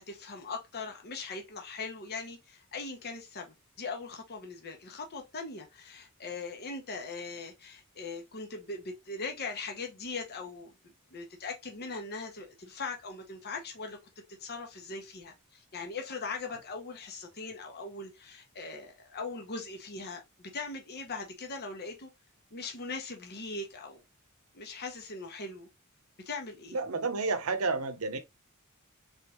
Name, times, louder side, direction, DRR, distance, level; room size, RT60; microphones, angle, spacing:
voice 1, 0.0-14.0 14.4-22.1 22.5-24.0 24.5-25.7 26.2-26.8, left 3 dB, 45° left, 1.0 m, -40 dB
voice 2, 26.7-28.2, right 3 dB, 70° right, 0.8 m, -30 dB
3.7 x 3.5 x 3.0 m
head